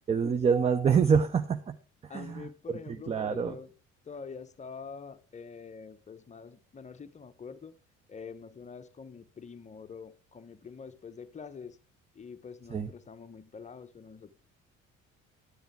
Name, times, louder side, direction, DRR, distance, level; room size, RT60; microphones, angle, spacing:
voice 1, 0.1-1.8 2.0-2.5 2.9-3.6 12.7-12.9, right 6 dB, 15° right, 0.5 m, -26 dB
voice 2, 2.1-3.7 4.1-7.7 8.1-11.8 12.1-14.3, left 5 dB, 20° left, 0.8 m, -46 dB
10.0 x 9.4 x 3.5 m
figure-of-eight pair, 55°, 39 cm